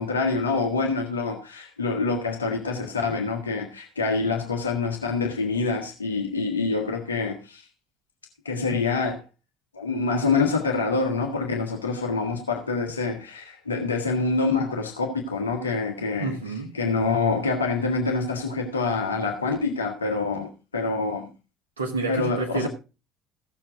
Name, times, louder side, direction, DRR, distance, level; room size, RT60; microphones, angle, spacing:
voice 1, 0.0-7.6 8.4-9.2 9.7-16.3 16.7-21.3 22.1-22.7, left 4 dB, 80° left, 1.5 m, -26 dB
voice 2, 16.2-16.8 21.8-22.7, right 3 dB, 80° right, 1.7 m, -29 dB
15.5 x 7.4 x 3.7 m
figure-of-eight pair, 55°, 0 cm